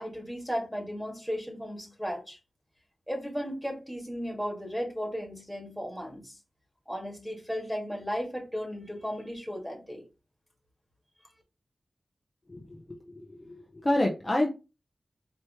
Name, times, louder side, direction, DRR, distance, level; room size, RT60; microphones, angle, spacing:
voice 1, 0.0-2.4 3.1-6.4 6.9-10.0, equal, ahead, -2 dB, 2.0 m, -35 dB
voice 2, 12.5-12.8 13.1-14.5, left 1 dB, 25° left, -1 dB, 0.8 m, -28 dB
4.8 x 3.1 x 3.1 m, 0.29 s
wide cardioid pair, 70°, 0 cm